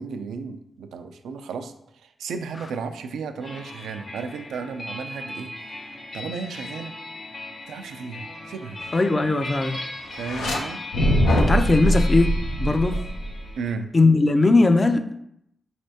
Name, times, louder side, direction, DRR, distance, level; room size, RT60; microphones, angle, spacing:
voice 1, 0.0-1.7 2.0-6.9 7.7-8.8 10.2-10.8 11.8-12.0 13.6-13.9, right 5 dB, 85° right, 8 dB, 0.3 m, -34 dB
sound 1, 3.4-13.7, left 2 dB, 60° left, 1.3 m, -38 dB
voice 2, 8.9-9.8 11.4-12.3 12.6-13.0 13.9-15.0, left 3 dB, 35° left, 7 dB, 0.5 m, -19 dB
sound 2, 10.1-10.6 10.9-13.5, equal, 90° left, 0.6 m, -22 dB
4.3 x 3.2 x 2.8 m, 0.75 s
supercardioid pair, 40°, 0 cm